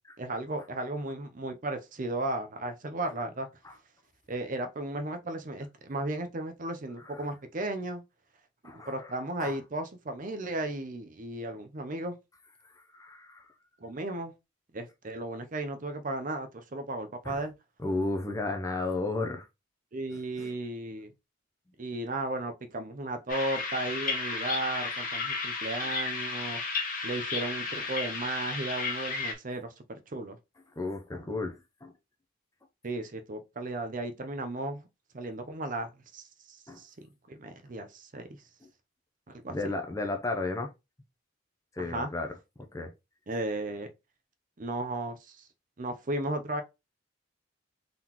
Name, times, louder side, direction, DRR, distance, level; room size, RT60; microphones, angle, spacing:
voice 1, 0.2-3.5 4.3-8.0 8.7-12.2 13.8-14.3 14.7-17.5 19.9-21.1 21.8-26.6 27.0-30.4 32.8-34.8 35.1-36.9 37.3-38.3 39.3-39.6 41.8-42.1 43.3-43.9 44.6-45.5 45.8-46.6, right 2 dB, 40° right, 0.6 m, -35 dB
voice 2, 8.6-9.1 9.4-9.6 12.6-13.5 17.2-17.4 17.8-19.5 20.4-20.5 25.8-25.9 30.8-31.9 36.7-36.8 39.5-40.7 41.7-42.3 42.7-42.9, left 2 dB, 15° left, 0.6 m, -34 dB
sound 1, 23.3-29.3, left 4 dB, 45° left, 1.2 m, -33 dB
3.8 x 3.7 x 3.0 m
head